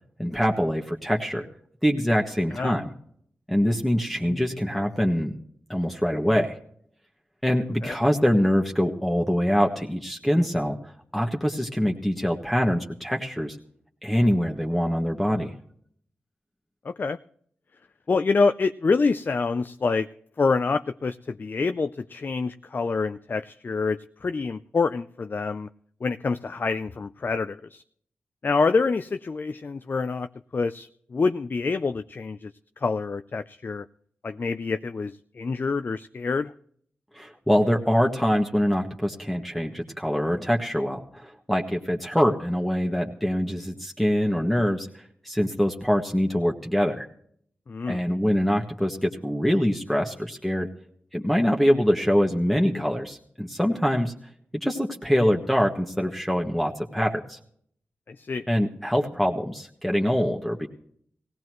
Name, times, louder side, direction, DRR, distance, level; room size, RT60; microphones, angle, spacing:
voice 1, 0.2-1.5 1.8-2.9 3.5-5.3 5.7-6.5 7.4-10.8 11.1-13.6 14.0-15.5 37.1-47.1 47.9-50.7 51.1-54.1 54.6-57.4 58.5-60.7, equal, ahead, 0 dB, 1.6 m, -24 dB
voice 2, 16.8-17.2 18.1-20.1 20.4-25.7 26.0-27.8 28.4-32.5 32.8-33.9 34.2-36.5 47.7-48.0 58.1-58.5, left 4 dB, 45° left, 10 dB, 0.5 m, -26 dB
19.0 x 16.0 x 3.1 m, 0.64 s
cardioid pair, 45°, 4 cm